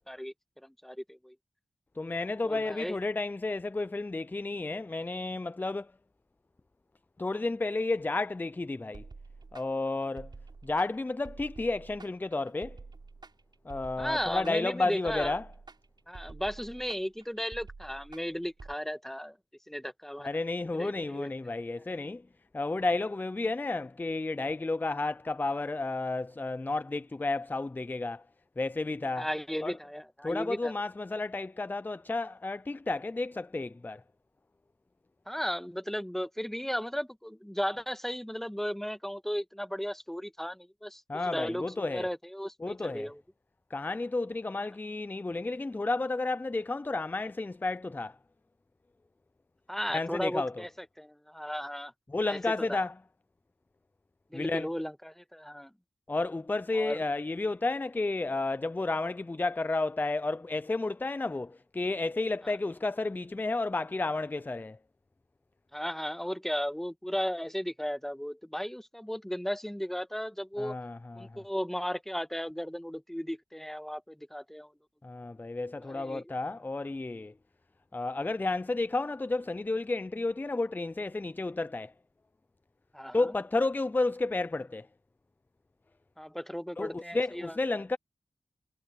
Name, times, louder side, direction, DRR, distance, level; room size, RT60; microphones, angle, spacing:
voice 1, 0.6-1.3 2.4-3.0 14.0-15.4 16.1-19.4 19.7-20.3 20.8-21.3 29.2-30.7 35.3-43.2 49.7-50.7 51.0-51.9 52.3-52.8 54.3-55.7 56.7-57.0 65.7-70.7 71.1-74.7 75.8-76.2 82.9-83.3 86.2-87.6, equal, 5° left, 1.6 m, -35 dB
voice 2, 2.0-5.9 7.2-9.1 9.5-10.3 10.6-12.8 13.7-15.5 20.2-22.2 22.5-28.2 28.6-29.3 29.6-29.7 30.2-34.0 41.1-42.1 42.6-43.1 43.7-48.2 49.9-50.6 52.1-52.9 54.3-54.7 56.1-64.8 70.6-71.4 75.0-77.3 77.9-81.9 83.1-84.9 86.8-88.0, left 2 dB, 20° left, 0.4 m, -32 dB
sound 1, 8.9-18.8, right 4 dB, 50° right, 6.5 m, -49 dB
cardioid pair, 45°, 9 cm